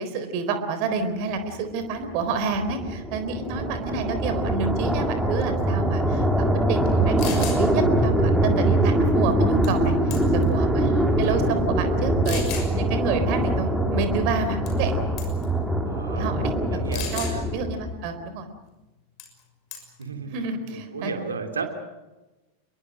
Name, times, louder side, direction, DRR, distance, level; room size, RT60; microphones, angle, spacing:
voice 1, 0.0-9.9 10.3-15.0 16.1-16.5 16.9-17.3 17.5-18.5 20.3-21.1, right 4 dB, 45° right, 8 dB, 4.0 m, -29 dB
sound 1, 1.8-18.1, right 1 dB, 5° right, 3.4 m, -23 dB
sound 2, 6.9-7.0 7.2-7.6 9.6-9.9 10.1-10.5 11.2-11.3 12.2-12.7 14.7-14.9 15.2-15.5 16.9-17.4 19.2-19.4 19.7-20.0, left 8 dB, 40° left, 6.2 m, -34 dB
voice 2, 11.1-11.4 15.8-16.3 16.7-17.4 20.0-20.4 20.7-21.7, right 5 dB, 70° right, 5 dB, 3.4 m, -34 dB
28.5 x 22.5 x 6.4 m, 1.1 s
figure-of-eight pair, 90°, 0 cm